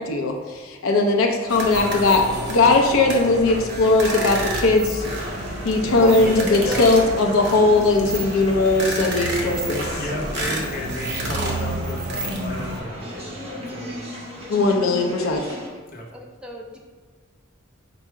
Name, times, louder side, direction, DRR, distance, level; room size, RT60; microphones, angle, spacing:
voice 1, 0.0-2.2 2.5-5.0 5.6-9.8 14.5-15.4, left 3 dB, 80° left, 2 dB, 0.5 m, -19 dB
sound 1, 1.5-12.8, right 1 dB, 60° right, 0.8 m, -29 dB
sound 2, 5.0-15.7, equal, 30° right, 0.8 m, -37 dB
voice 2, 5.3-6.3 6.6-6.9 9.3-9.6 9.9-14.1 15.9-16.1, left 1 dB, 40° left, -2 dB, 0.8 m, -34 dB
voice 3, 6.0-6.9 16.1-16.8, left 1 dB, 5° right, -1 dB, 0.5 m, -32 dB
4.6 x 2.0 x 4.5 m, 1.4 s
head